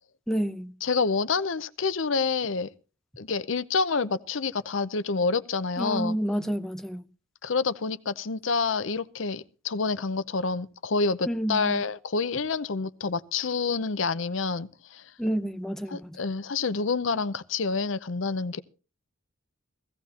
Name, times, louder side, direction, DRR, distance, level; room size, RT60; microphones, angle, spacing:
voice 1, 0.3-0.7 5.8-7.1 11.3-11.8 15.2-16.2, equal, ahead, 0.7 m, -29 dB
voice 2, 0.8-2.7 3.2-6.2 7.4-15.0 15.9-18.6, left 4 dB, 70° left, 0.7 m, -28 dB
16.5 x 16.0 x 2.9 m
head